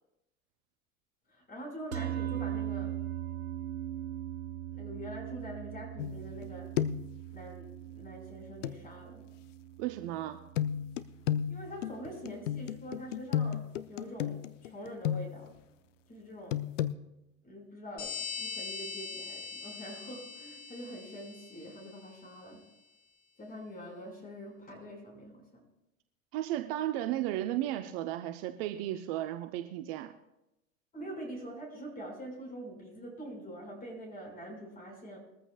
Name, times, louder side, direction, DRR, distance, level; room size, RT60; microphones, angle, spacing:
voice 1, 1.3-2.9 4.7-6.7 7.3-9.2 11.5-15.5 16.1-16.6 17.4-22.6 23.4-25.6 30.9-35.2, equal, 20° left, 2 dB, 5.4 m, -45 dB
sound 1, 1.9-12.4, right 11 dB, 85° right, 0.7 m, -40 dB
sound 2, 6.0-6.5 6.8-7.2 8.6-8.8 10.6-15.6 16.5-16.9, left 10 dB, 60° left, 0.7 m, -33 dB
voice 2, 9.8-10.4 26.3-30.1, right 13 dB, 45° right, 8 dB, 0.8 m, -34 dB
sound 3, 18.0-22.3, left 5 dB, 40° left, 5.1 m, -42 dB
21.5 x 14.0 x 2.4 m, 0.90 s
figure-of-eight pair, 90°, 41 cm